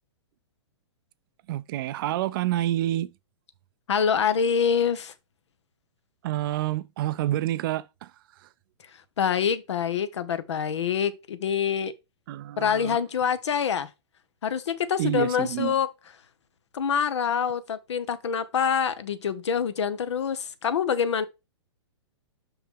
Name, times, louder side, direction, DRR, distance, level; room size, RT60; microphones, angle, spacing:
voice 1, 1.5-3.1 6.2-8.1 12.3-13.0 15.0-15.7, right 14 dB, 50° right, 0.5 m, -28 dB
voice 2, 3.9-5.1 9.2-11.9 12.6-13.9 14.4-15.9 16.7-21.2, left 7 dB, 70° left, 0.9 m, -25 dB
5.7 x 5.7 x 3.7 m
hypercardioid pair, 120°, 15 cm